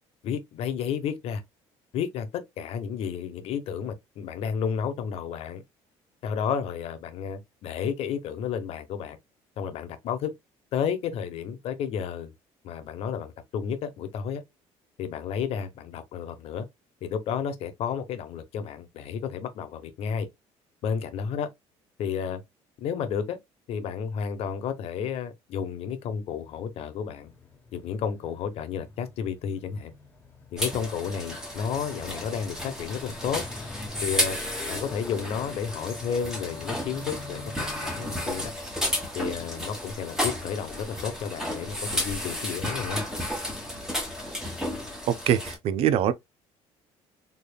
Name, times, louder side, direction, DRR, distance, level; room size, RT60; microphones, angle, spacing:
voice 1, 0.2-1.4 1.9-5.6 6.2-9.2 9.6-10.3 10.7-12.3 12.6-14.4 15.0-16.7 17.0-20.3 20.8-21.5 22.0-22.4 22.8-23.4 23.7-27.3 27.7-29.9 30.5-33.4 34.0-34.4 34.7-38.5 39.1-43.0, left 7 dB, 60° left, 0.9 m, -32 dB
Motorcycle, 26.0-38.5, left 2 dB, 15° left, 1.0 m, -45 dB
sound 1, 30.6-45.6, left 1 dB, 5° right, 1.4 m, -33 dB
voice 2, 45.1-46.1, right 10 dB, 60° right, 0.4 m, -23 dB
3.8 x 3.4 x 2.2 m
cardioid pair, 130°, 11 cm